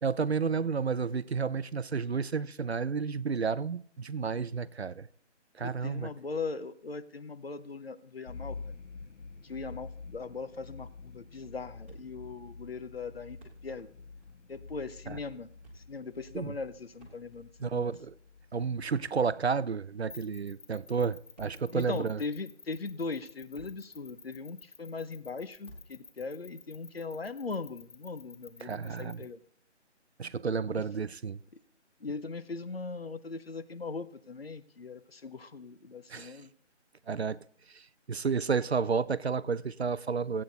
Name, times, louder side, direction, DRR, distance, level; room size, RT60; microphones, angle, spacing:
voice 1, 0.0-5.1 5.6-6.1 15.1-15.2 16.3-16.5 17.6-18.1 18.5-22.2 28.6-29.2 30.2-31.4 36.1-36.4 37.1-37.4 37.7-40.4, right 5 dB, 60° right, 0.6 m, -31 dB
voice 2, 5.6-8.7 9.4-13.9 14.5-15.5 15.7-17.9 21.7-29.4 30.7-30.8 31.5-31.6 32.0-36.5, left 4 dB, 55° left, 0.9 m, -40 dB
sound 1, 8.3-19.2, left 4 dB, 90° left, 1.2 m, -48 dB
Thump thud, 11.9-12.4 12.6-12.7 13.2-13.9 14.2-14.4 15.4-16.0 16.9-17.6 18.8-19.7 21.1-21.8 22.5-22.7 23.2-24.0 24.3-24.4 25.6-26.1, right 1 dB, 10° right, 1.2 m, -54 dB
sound 2, 20.1-29.2, left 4 dB, 70° left, 1.5 m, -51 dB
16.0 x 8.6 x 3.9 m
figure-of-eight pair, 180°, 36 cm